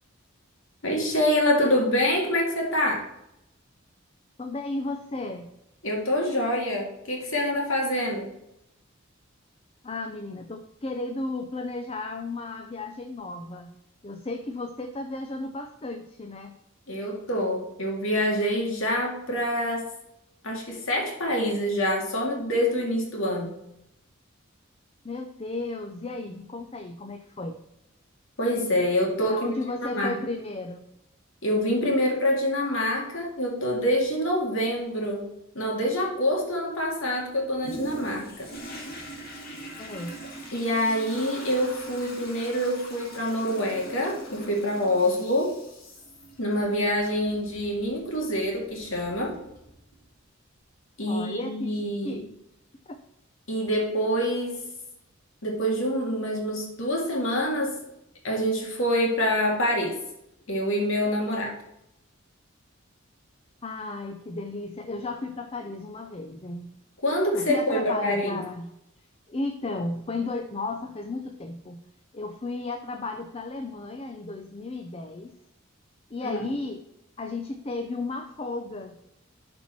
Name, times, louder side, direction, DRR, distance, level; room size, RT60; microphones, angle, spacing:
voice 1, 0.8-3.1 5.8-8.3 16.9-19.9 20.4-23.5 28.4-29.4 29.9-30.2 31.4-35.2 35.6-38.5 40.5-45.6 46.4-49.4 51.0-52.2 53.5-54.6 55.4-57.8 58.2-60.0 60.5-61.6 67.0-68.4 76.2-76.5, equal, 70° left, -1 dB, 2.1 m, -26 dB
voice 2, 4.4-5.5 9.8-13.7 14.0-16.5 25.0-27.6 29.2-30.8 39.8-40.2 51.1-52.2 52.9-53.0 63.6-66.7 67.3-68.7 69.3-71.8 72.1-75.3 76.1-76.8 77.2-79.0, left 2 dB, 30° left, 6 dB, 0.6 m, -34 dB
Toilet flush, 37.6-50.0 50.6-50.7, right 1 dB, 45° left, 2.1 m, -42 dB
12.0 x 4.4 x 4.2 m, 0.85 s
head